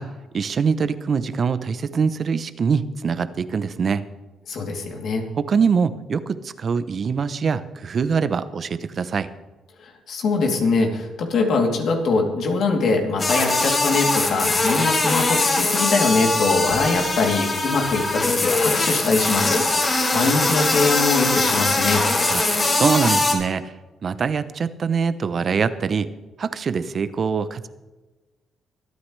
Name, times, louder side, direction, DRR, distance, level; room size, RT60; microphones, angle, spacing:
voice 1, 0.0-4.0 5.4-9.3 22.3-22.4 22.7-23.7 24.0-26.1 26.4-27.7, right 6 dB, 50° right, 13 dB, 0.7 m, -23 dB
voice 2, 4.5-5.2 9.8-19.6 20.1-22.0, left 3 dB, 65° left, 1 dB, 3.0 m, -22 dB
sound 1, 13.2-23.4, left 2 dB, 35° left, 3.1 m, -21 dB
24.5 x 9.5 x 3.3 m, 1.2 s
cardioid pair, 90°, 0 cm